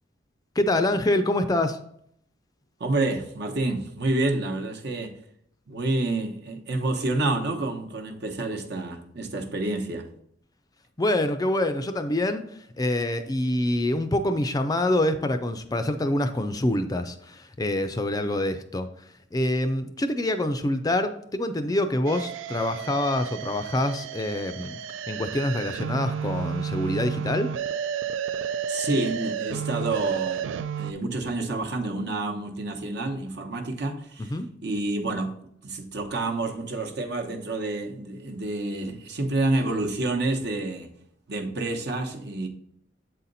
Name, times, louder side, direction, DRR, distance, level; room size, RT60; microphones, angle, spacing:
voice 1, 0.6-1.8 11.0-12.4 12.8-18.9 19.3-24.8 25.1-27.5 34.2-34.5, left 1 dB, 20° left, 8 dB, 0.4 m, -26 dB
voice 2, 2.8-5.1 5.7-10.1 28.7-40.9 41.3-42.5, right 2 dB, 60° right, 3 dB, 1.0 m, -28 dB
sound 1, 22.1-30.9, right 7 dB, 85° right, 0.3 m, -32 dB
7.7 x 4.2 x 4.0 m, 0.69 s
head